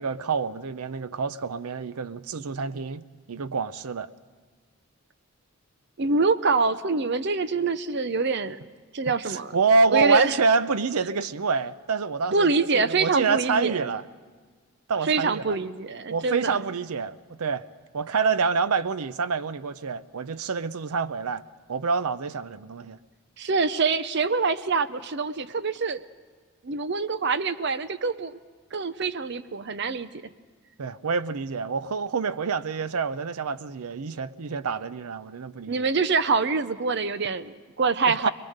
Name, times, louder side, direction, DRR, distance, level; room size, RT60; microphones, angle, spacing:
voice 1, 0.0-3.0 3.3-4.1 9.3-14.0 14.9-15.6 16.1-17.6 17.9-21.4 21.7-23.0 30.8-35.9 38.1-38.3, right 4 dB, 85° right, 0.6 m, -27 dB
voice 2, 6.0-8.6 8.9-9.5 9.9-10.3 12.3-13.9 15.0-16.6 23.4-26.0 26.6-28.4 28.7-30.1 35.7-38.3, right 4 dB, 50° right, 0.6 m, -25 dB
22.0 x 22.0 x 6.6 m
head